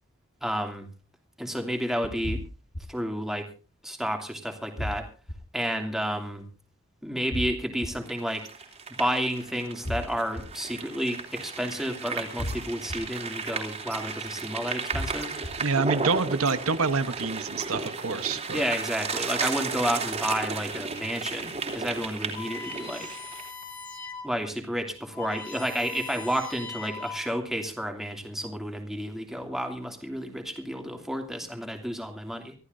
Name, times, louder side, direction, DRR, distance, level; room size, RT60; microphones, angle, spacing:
voice 1, 0.4-0.9 1.4-2.4 2.9-3.5 3.8-5.1 5.5-6.5 7.0-8.5 9.0-15.3 18.5-23.1 24.2-32.5, equal, ahead, 3 dB, 2.8 m, -31 dB
sound 1, 2.2-2.8 4.8-5.4 7.3-7.9 9.8-10.4 12.4-13.0 14.9-15.5, left 1 dB, 60° left, 3.4 m, -33 dB
sound 2, 8.1-23.5, right 4 dB, 30° right, 3.1 m, -34 dB
voice 2, 15.6-18.6, right 4 dB, 75° right, 10 dB, 1.1 m, -27 dB
sound 3, 22.3-24.4 24.7-24.8 25.0-27.5, left 4 dB, 40° left, 5.3 m, -40 dB
25.0 x 14.5 x 2.7 m, 0.34 s
head